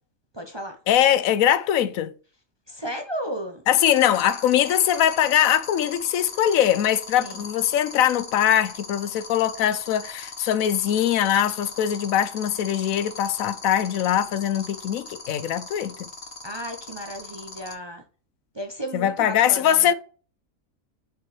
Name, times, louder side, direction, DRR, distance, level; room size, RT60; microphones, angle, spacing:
voice 1, 0.3-0.8 2.7-3.6 7.2-7.5 16.4-18.0 18.5-19.9, equal, 25° right, 0.6 m, -34 dB
voice 2, 0.9-2.1 3.7-16.1 18.9-19.9, left 10 dB, 80° left, 1.0 m, -22 dB
sound 1, 3.8-17.7, left 4 dB, 45° left, 1.3 m, -38 dB
6.0 x 5.4 x 3.2 m
omnidirectional pair, 1.4 m